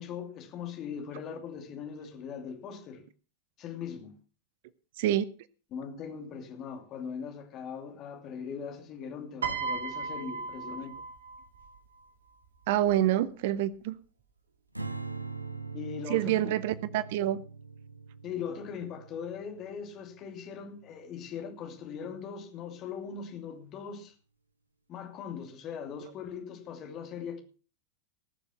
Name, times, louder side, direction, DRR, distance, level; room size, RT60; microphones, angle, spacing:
voice 1, 0.0-3.0 3.6-4.1 5.7-11.0 15.7-16.5 18.2-24.1 24.9-27.4, left 7 dB, 35° left, 2.8 m, -40 dB
Piano, 9.4-11.8 12.8-13.1, right 5 dB, 70° right, 2.2 m, -36 dB
voice 2, 12.7-14.0 16.1-17.4, right 12 dB, 50° right, 0.7 m, -27 dB
Strum, 14.7-21.1, right 4 dB, 85° right, 0.9 m, -42 dB
19.5 x 7.0 x 5.8 m
figure-of-eight pair, 90°, 0 cm